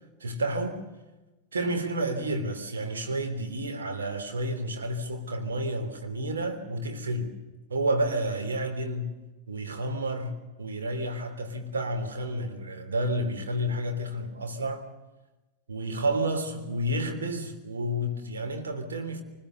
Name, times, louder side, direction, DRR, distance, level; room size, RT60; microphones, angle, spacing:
voice 1, 0.2-0.8 1.5-7.4 7.7-9.1 9.5-14.8 15.7-19.2, right 1 dB, 70° right, 3.3 m, -30 dB
25.0 x 21.0 x 6.8 m
figure-of-eight pair, 90°, 0 cm